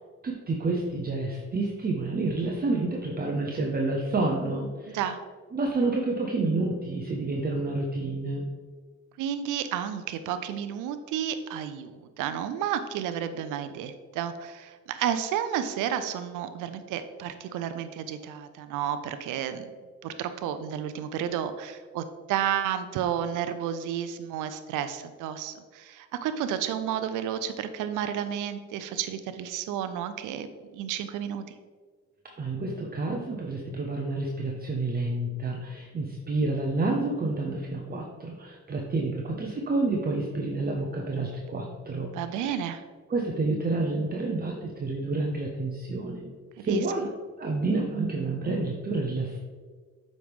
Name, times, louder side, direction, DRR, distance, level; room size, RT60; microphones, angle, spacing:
voice 1, 0.2-5.0 5.5-8.5 32.4-42.6 43.1-46.3 46.6-47.1 47.4-49.4, right 2 dB, 30° right, 0 dB, 0.9 m, -29 dB
voice 2, 9.2-19.6 20.0-30.5 30.7-31.4 42.1-42.8 46.6-46.8, right 9 dB, 85° right, 10 dB, 0.5 m, -31 dB
7.6 x 5.3 x 3.6 m, 1.5 s
cardioid pair, 90°, 30 cm